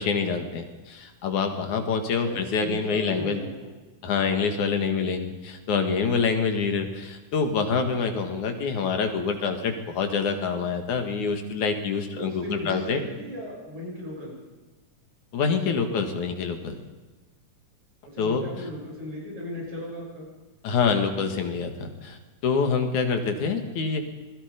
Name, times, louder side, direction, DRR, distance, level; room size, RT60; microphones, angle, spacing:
voice 1, 0.0-3.4 4.0-13.0 15.3-16.7 18.2-18.4 20.6-22.2 22.4-24.0, left 5 dB, 70° left, 5 dB, 3.3 m, -26 dB
voice 2, 2.2-3.7 12.2-14.4 18.1-20.3, equal, 65° right, -3 dB, 9.2 m, -36 dB
26.5 x 20.5 x 5.3 m, 1.2 s
omnidirectional pair, 3.6 m